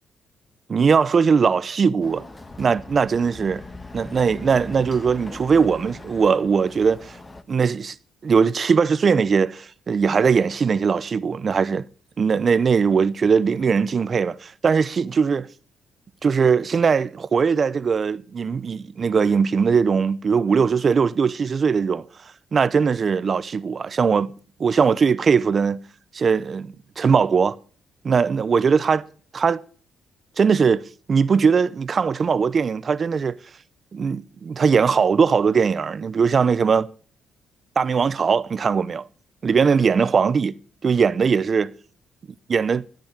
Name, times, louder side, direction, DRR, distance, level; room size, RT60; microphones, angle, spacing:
voice 1, 0.7-2.2 2.6-3.6 3.9-7.2 7.5-7.9 8.2-11.8 12.2-15.5 16.2-22.0 22.5-24.3 24.6-25.8 26.1-27.6 28.0-29.0 29.3-29.6 30.4-30.8 31.1-33.4 33.9-36.9 37.8-39.0 39.4-40.5 40.8-41.7 42.5-42.8, right 5 dB, 45° right, 0.7 m, -20 dB
Chatter / Car passing by / Motorcycle, 2.0-7.4, left 2 dB, 20° left, 1.4 m, -40 dB
13.5 x 10.0 x 6.6 m
cardioid pair, 90°, 0 cm